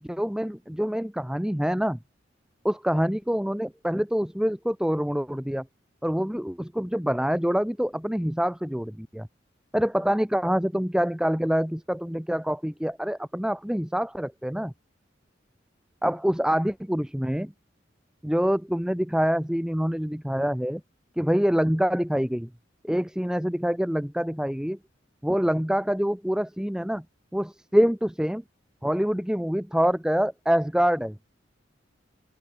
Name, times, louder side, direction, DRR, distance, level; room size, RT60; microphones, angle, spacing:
voice 1, 0.0-2.0 2.6-5.7 6.0-9.3 9.7-14.7 16.0-17.5 18.2-20.8 21.2-22.5 22.8-24.8 25.2-27.0 27.3-28.4 28.8-31.2, equal, 5° right, 0.7 m, -26 dB
open air
head